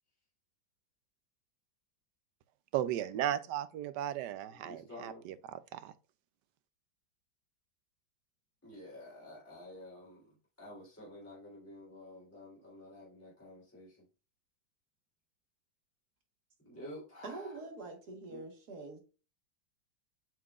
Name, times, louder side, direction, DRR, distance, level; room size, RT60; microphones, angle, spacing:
voice 1, 2.7-5.9, right 11 dB, 75° right, 1.1 m, -36 dB
voice 2, 4.5-5.4 8.6-14.0 16.6-17.6 18.3-18.4, left 1 dB, 5° left, 3.4 m, -50 dB
voice 3, 17.2-19.0, right 3 dB, 55° right, 2.0 m, -45 dB
7.6 x 5.7 x 2.4 m
omnidirectional pair, 2.0 m